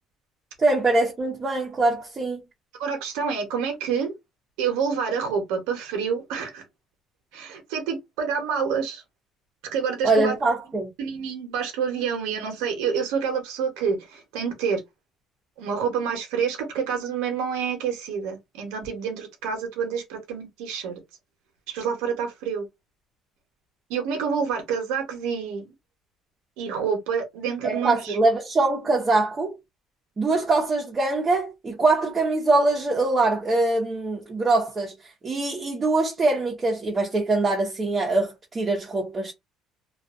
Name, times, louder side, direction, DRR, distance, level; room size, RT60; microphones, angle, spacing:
voice 1, 0.6-2.4 10.0-10.9 27.6-29.5 30.2-34.9 35.2-39.3, right 2 dB, 25° right, 0.8 m, -23 dB
voice 2, 2.8-4.1 4.6-6.6 7.3-9.0 9.7-10.3 11.0-14.8 15.6-21.0 21.7-22.6 23.9-25.7 26.6-28.2, right 6 dB, 90° right, 0.9 m, -28 dB
2.4 x 2.4 x 2.4 m
cardioid pair, 115°, 0 cm